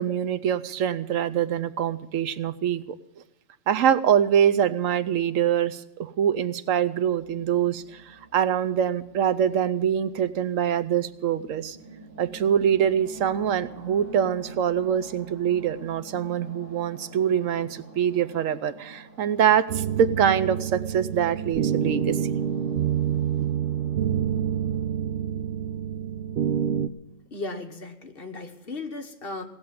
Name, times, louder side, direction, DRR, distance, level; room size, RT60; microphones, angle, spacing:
voice 1, 0.0-2.8 3.7-11.8 12.2-22.3, right 9 dB, 90° right, 14 dB, 1.1 m, -24 dB
sound 1, 7.1-24.9, right 2 dB, 10° left, 5.9 m, -47 dB
sound 2, 19.7-26.9, right 9 dB, 60° right, 0.9 m, -27 dB
voice 2, 27.3-29.5, left 3 dB, 50° left, 4 dB, 1.4 m, -36 dB
17.5 x 7.2 x 9.3 m, 0.89 s
omnidirectional pair, 1.3 m